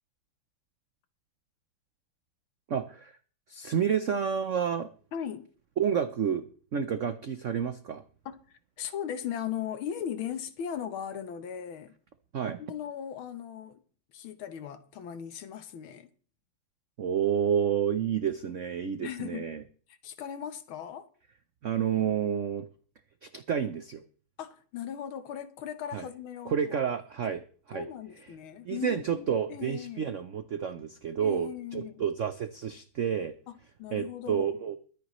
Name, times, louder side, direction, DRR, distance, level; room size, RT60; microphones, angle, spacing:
voice 1, 2.7-3.2 3.5-4.9 5.8-8.0 12.3-12.6 17.0-19.6 21.6-22.7 23.2-24.0 25.9-26.0 26.5-27.4 27.7-27.9 28.6-33.3 33.9-34.8, right 8 dB, 75° right, 0.7 m, -30 dB
voice 2, 5.1-5.5 8.3-12.0 12.6-13.8 14.1-16.1 19.0-19.5 20.0-21.1 24.4-26.6 27.7-30.1 31.2-32.0 33.5-34.5, left 9 dB, 75° left, 1.8 m, -38 dB
23.5 x 9.1 x 3.1 m
omnidirectional pair, 2.4 m